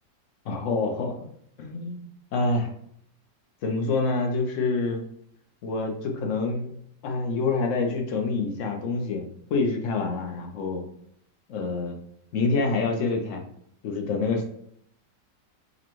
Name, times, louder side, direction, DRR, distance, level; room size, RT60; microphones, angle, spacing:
voice 1, 0.4-1.1 1.6-2.0 2.3-2.7 3.6-5.0 5.6-6.7 7.0-10.9 11.5-12.0 12.3-13.4 13.8-14.5, left 3 dB, 60° left, 2 dB, 0.8 m, -27 dB
5.0 x 2.2 x 3.0 m, 0.69 s
omnidirectional pair, 1.9 m